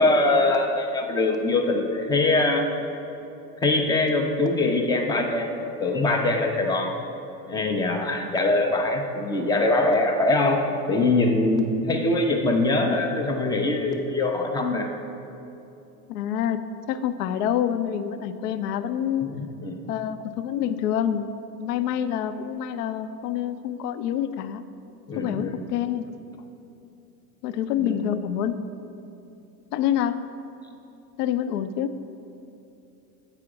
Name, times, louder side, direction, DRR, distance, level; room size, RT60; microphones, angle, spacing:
voice 1, 0.0-2.7 3.6-6.9 7.5-10.6 10.9-14.9 19.2-19.8 25.1-25.6 27.8-28.1, left 2 dB, 10° left, 3 dB, 0.3 m, -23 dB
voice 2, 16.1-19.3 19.9-21.3 21.6-24.6 25.1-26.1 27.4-28.6 29.7-30.2 31.2-31.9, left 10 dB, 75° left, 11 dB, 0.6 m, -27 dB
7.8 x 4.9 x 4.7 m, 2.9 s
hypercardioid pair, 95°, 48 cm